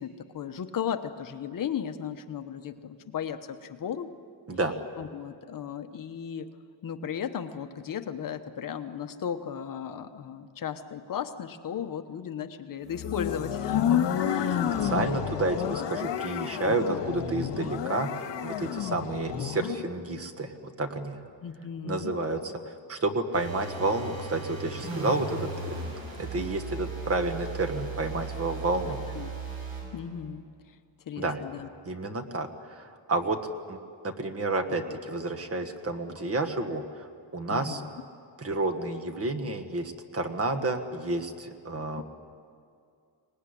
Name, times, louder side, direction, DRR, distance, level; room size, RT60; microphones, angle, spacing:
voice 1, 0.0-4.1 5.0-6.5 6.8-15.3 15.7-15.9 16.6-17.0 19.4-19.8 21.4-22.1 28.8-29.3 29.9-30.5 31.1-31.7 37.5-37.9 42.0-42.1, left 8 dB, 45° left, 8 dB, 1.1 m, -36 dB
sound 1, 12.9-19.8, left 9 dB, 70° left, 1.8 m, -30 dB
voice 2, 14.8-20.5 20.8-21.2 21.8-25.8 26.2-29.0 31.2-31.4 31.8-33.4 33.7-33.8 34.0-37.1 37.3-37.8 38.4-42.0, right 2 dB, 30° right, 7 dB, 1.5 m, -30 dB
sound 2, 23.3-29.9, right 4 dB, 55° right, 7.3 m, -37 dB
24.0 x 19.5 x 9.9 m, 2.4 s
cardioid pair, 155°, 44 cm